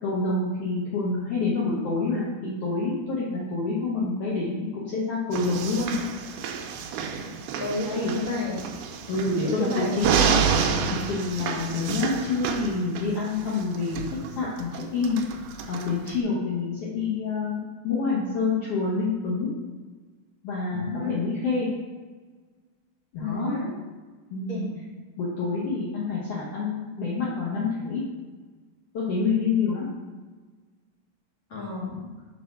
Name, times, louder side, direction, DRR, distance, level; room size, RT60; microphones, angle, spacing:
voice 1, 0.0-6.0 7.8-8.1 9.1-10.5 11.0-14.0 14.3-15.2 15.7-19.5 20.4-21.7 23.1-23.6 24.3-24.6 25.2-28.0 28.9-29.9, left 4 dB, 70° left, -7 dB, 1.5 m, -27 dB
sound 1, 5.3-16.2, right 6 dB, 80° right, 1.9 m, -29 dB
voice 2, 7.6-8.6 9.4-9.9 20.7-21.2 23.2-23.7 24.5-24.7 31.5-32.1, left 2 dB, 50° left, -7 dB, 1.7 m, -31 dB
5.3 x 4.3 x 5.7 m, 1.4 s
omnidirectional pair, 4.3 m